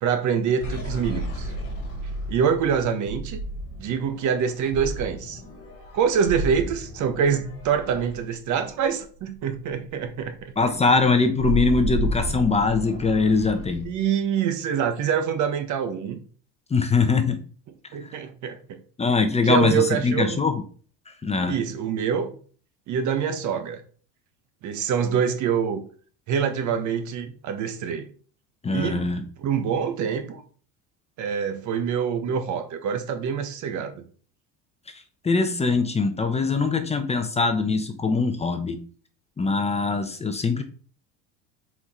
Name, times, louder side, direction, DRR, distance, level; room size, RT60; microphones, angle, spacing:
voice 1, 0.0-1.5 2.3-3.4 3.8-5.4 5.9-10.5 13.8-16.2 17.9-18.8 19.4-20.4 21.5-22.3 22.9-23.8 24.6-25.8 26.3-28.1 28.7-29.1 29.4-30.4 31.2-34.0, right 7 dB, 50° right, 1.4 m, -25 dB
sound 1, 0.6-9.0 9.4-9.6 9.8-14.0, right 1 dB, 40° left, 3.5 m, -32 dB
voice 2, 10.6-13.9 16.7-17.4 18.0-18.2 19.0-20.6 21.2-21.6 28.6-29.2 34.9-38.8 39.4-40.6, left 4 dB, 15° left, 0.9 m, -22 dB
6.2 x 4.9 x 4.4 m
supercardioid pair, 115°, 36 cm